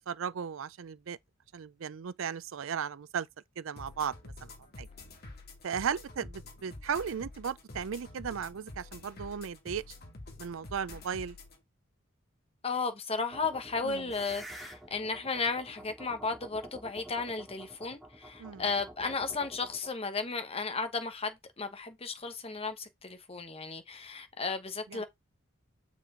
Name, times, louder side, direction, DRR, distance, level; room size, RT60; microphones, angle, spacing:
voice 1, 0.1-1.2 1.5-3.3 3.6-4.5 4.8-4.9 5.6-9.8 10.4-11.4 13.8-14.1 18.4-18.6 24.9-25.0, right 7 dB, 75° right, 0.5 m, -36 dB
sound 1, 3.8-11.6, left 2 dB, 50° left, 2.3 m, -48 dB
voice 2, 12.6-25.0, left 4 dB, 30° left, 1.1 m, -34 dB
sound 2, 13.3-19.9, right 1 dB, ahead, 2.9 m, -49 dB
6.8 x 5.1 x 3.7 m
head